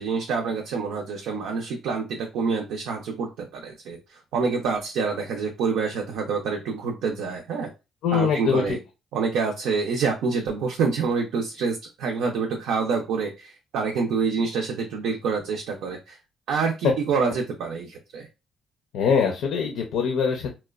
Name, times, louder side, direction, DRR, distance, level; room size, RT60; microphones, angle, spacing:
voice 1, 0.0-7.7 8.1-8.8 9.1-16.2 16.5-18.3, right 5 dB, 90° right, 2 dB, 0.5 m, -27 dB
voice 2, 8.0-8.8 18.9-20.5, left 6 dB, 90° left, 2 dB, 0.5 m, -23 dB
2.9 x 2.1 x 2.3 m, 0.27 s
cardioid pair, 90°, 0 cm